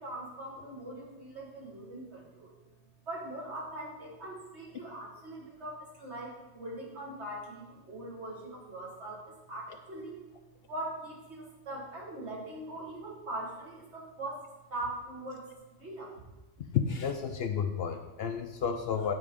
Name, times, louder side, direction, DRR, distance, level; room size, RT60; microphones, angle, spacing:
voice 1, 0.0-2.5 3.1-9.2 9.5-10.2 10.7-14.4 14.7-15.5 15.8-16.2, right 1 dB, 65° right, -3 dB, 2.1 m, -41 dB
voice 2, 16.7-19.1, left 7 dB, 65° left, 6 dB, 0.7 m, -31 dB
9.0 x 3.8 x 5.1 m, 1.1 s
omnidirectional pair, 1.3 m